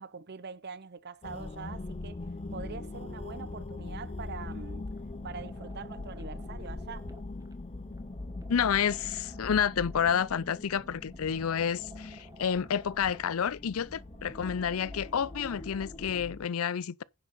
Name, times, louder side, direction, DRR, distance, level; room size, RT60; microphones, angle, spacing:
voice 1, 0.0-2.3 2.5-4.9 5.2-7.1, right 5 dB, 50° right, 0.7 m, -44 dB
sound 1, 1.2-16.5, left 2 dB, 30° left, 0.6 m, -42 dB
sound 2, 4.4-16.4, right 1 dB, 15° right, 1.3 m, -53 dB
voice 2, 8.5-17.0, left 7 dB, 75° left, 0.5 m, -29 dB
10.0 x 7.0 x 4.2 m
head